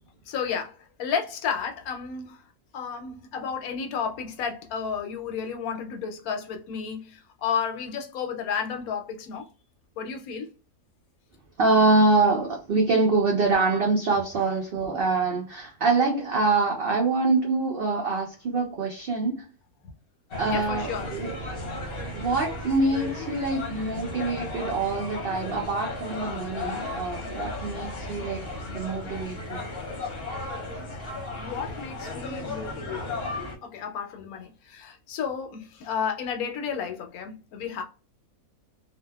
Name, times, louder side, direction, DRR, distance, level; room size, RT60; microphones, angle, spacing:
voice 1, 0.3-2.4 2.7-9.5 10.0-10.5 20.5-21.1 31.4-33.3 33.6-37.8, left 7 dB, 75° left, 1.0 m, -32 dB
voice 2, 11.6-19.5 20.4-21.4 22.1-29.6, right 3 dB, 70° right, 0.5 m, -25 dB
sound 1, 20.3-33.6, left 2 dB, 45° left, 0.8 m, -35 dB
2.6 x 2.1 x 2.2 m
omnidirectional pair, 1.6 m